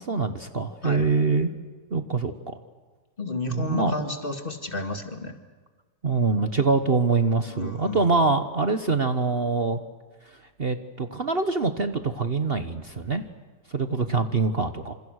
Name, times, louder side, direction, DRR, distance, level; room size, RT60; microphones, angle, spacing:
voice 1, 0.0-1.5 1.9-2.3 3.5-3.9 6.0-9.8 10.6-13.2 13.7-14.9, right 4 dB, 40° right, 9 dB, 1.3 m, -24 dB
voice 2, 3.2-5.3 7.5-8.1, left 3 dB, 35° left, 7 dB, 2.2 m, -32 dB
28.5 x 27.0 x 6.5 m, 1.4 s
omnidirectional pair, 1.7 m